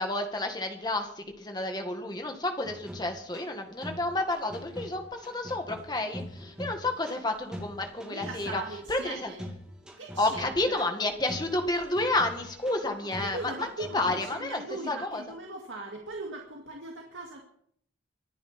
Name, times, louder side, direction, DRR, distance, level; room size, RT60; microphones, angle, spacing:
voice 1, 0.0-8.6 8.9-9.3 10.2-13.7 13.9-14.6 14.9-15.2, left 2 dB, 20° left, 5 dB, 1.9 m, -30 dB
sound 1, 2.6-14.3, equal, 5° right, 3.0 m, -44 dB
voice 2, 8.1-9.5 10.0-10.9 13.0-17.4, right 2 dB, 80° right, 0 dB, 2.3 m, -40 dB
25.0 x 9.8 x 4.3 m, 0.65 s
head